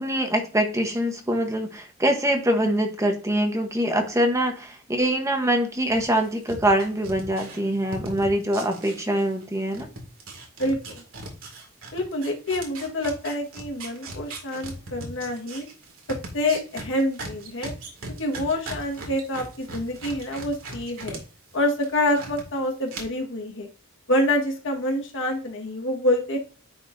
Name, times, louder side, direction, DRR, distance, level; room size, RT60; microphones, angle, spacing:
voice 1, 0.0-9.9, right 1 dB, 15° right, 4 dB, 0.9 m, -24 dB
sound 1, 5.9-9.5 9.7-21.2 21.5-22.4 22.9-23.0, right 2 dB, 85° right, 2.1 m, -38 dB
voice 2, 10.6-11.0 11.9-15.7 16.1-17.7 18.2-21.2 21.5-23.7 24.1-26.4, left 1 dB, 65° left, 1 dB, 1.4 m, -27 dB
10.0 x 4.2 x 2.6 m, 0.37 s
head